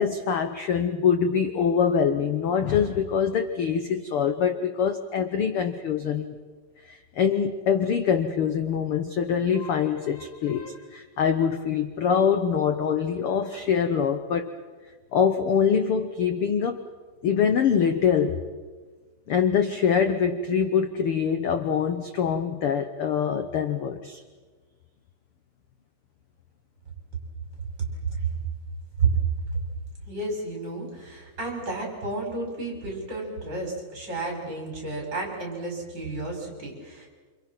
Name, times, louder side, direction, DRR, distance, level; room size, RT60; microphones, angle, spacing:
voice 1, 0.0-6.3 6.9-14.5 15.1-16.8 17.2-18.4 19.3-24.2, left 7 dB, 60° left, 7 dB, 1.5 m, -24 dB
voice 2, 28.0-28.4 29.0-29.2 30.1-37.1, right 4 dB, 35° right, 0 dB, 6.9 m, -31 dB
28.5 x 27.5 x 6.1 m, 1.4 s
omnidirectional pair, 3.6 m